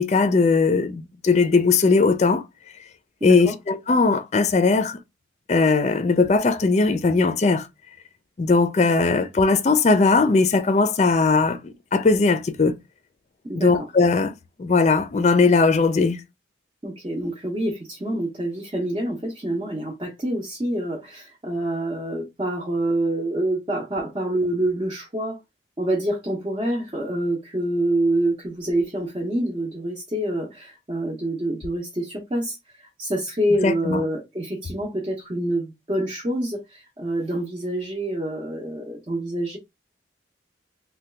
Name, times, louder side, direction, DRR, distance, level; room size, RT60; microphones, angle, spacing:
voice 1, 0.0-2.4 3.2-5.0 5.5-7.7 8.4-12.7 13.5-16.2 33.6-34.0, left 4 dB, 35° left, 0.4 m, -19 dB
voice 2, 3.2-3.6 13.4-13.7 16.8-25.4 25.8-39.6, right 1 dB, 25° right, 0.6 m, -26 dB
2.8 x 2.3 x 3.2 m
head